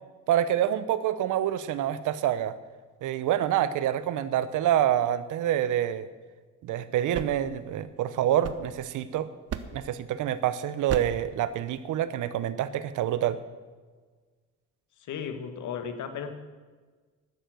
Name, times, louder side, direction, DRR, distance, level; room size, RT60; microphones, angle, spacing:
voice 1, 0.3-2.5 3.0-6.1 6.6-9.3 9.7-13.4, right 11 dB, 85° right, 14 dB, 0.9 m, -27 dB
sound 1, 6.9-9.1 9.5-10.0 10.9-11.3, right 8 dB, 55° right, 1.0 m, -37 dB
voice 2, 15.0-16.3, left 7 dB, 75° left, 8 dB, 1.8 m, -35 dB
12.0 x 10.0 x 7.8 m, 1.4 s
cardioid pair, 90°, 30 cm